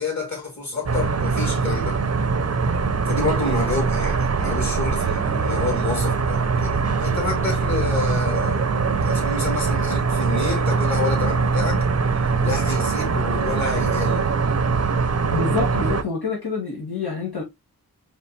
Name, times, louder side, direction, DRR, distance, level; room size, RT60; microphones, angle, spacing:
voice 1, 0.0-2.0 3.0-11.9 12.4-14.3, left 3 dB, 45° left, 2.6 m, -29 dB
sound 1, 0.8-16.0, right 4 dB, 40° right, 0.5 m, -22 dB
voice 2, 15.3-17.4, left 4 dB, 80° left, 1.6 m, -27 dB
4.3 x 3.4 x 2.7 m
wide cardioid pair, 55°, 38 cm